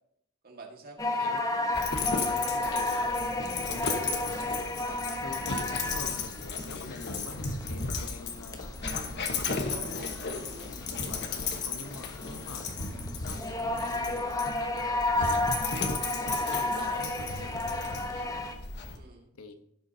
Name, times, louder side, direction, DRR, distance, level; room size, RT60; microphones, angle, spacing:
voice 1, 0.4-1.0 2.1-2.3 9.5-10.8 15.9-16.1 18.9-19.3, right 3 dB, 45° right, 1 dB, 1.8 m, -48 dB
sound 1, 1.0-18.5, left 2 dB, 15° left, 0.9 m, -33 dB
Dog, 1.7-19.0, left 4 dB, 50° left, 1.2 m, -35 dB
voice 2, 2.7-3.1 3.5-4.9 5.2-10.3 10.9-11.3 11.6-12.7 13.2-15.6 16.2-18.6 19.3-19.5, left 3 dB, 75° left, 7 dB, 1.1 m, -46 dB
16.5 x 7.1 x 2.8 m, 0.74 s
head